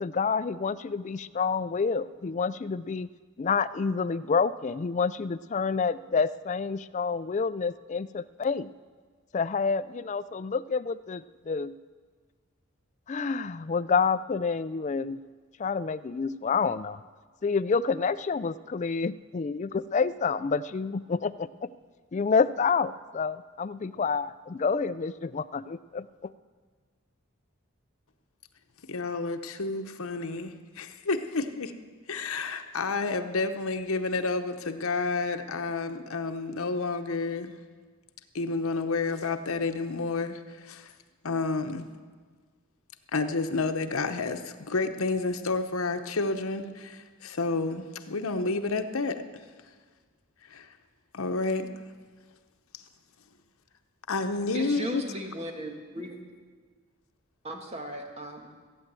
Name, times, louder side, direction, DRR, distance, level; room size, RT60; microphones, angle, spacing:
voice 1, 0.0-3.1 3.4-8.7 9.3-11.7 13.1-15.2 15.6-17.0 17.4-21.5 22.1-26.3, left 5 dB, 35° left, 13 dB, 0.3 m, -28 dB
voice 2, 28.8-31.7 32.1-37.6 38.3-40.9 41.2-41.9 43.1-49.3 50.4-50.8 51.1-51.7 52.7-52.8 54.1-55.0, left 3 dB, 85° left, 7 dB, 0.9 m, -30 dB
voice 3, 54.5-56.2 57.4-58.5, right 1 dB, 30° right, 3 dB, 1.6 m, -36 dB
15.5 x 8.9 x 7.6 m, 1.5 s
head